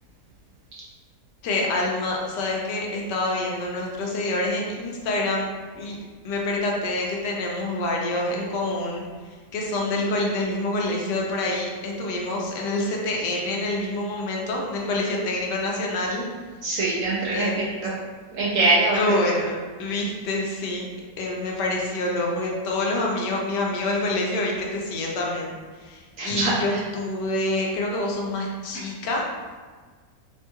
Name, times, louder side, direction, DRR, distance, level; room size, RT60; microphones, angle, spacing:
voice 1, 1.4-5.5 5.8-6.0 6.2-9.0 9.5-16.2 17.3-17.7 18.9-19.5 19.8-20.9 21.2-29.3, left 2 dB, 80° left, -1 dB, 1.2 m, -26 dB
voice 2, 16.6-17.5 17.8-17.9 18.3-19.2 26.2-26.8, right 2 dB, 75° right, -5 dB, 0.7 m, -23 dB
3.5 x 2.2 x 2.8 m, 1.5 s
omnidirectional pair, 1.8 m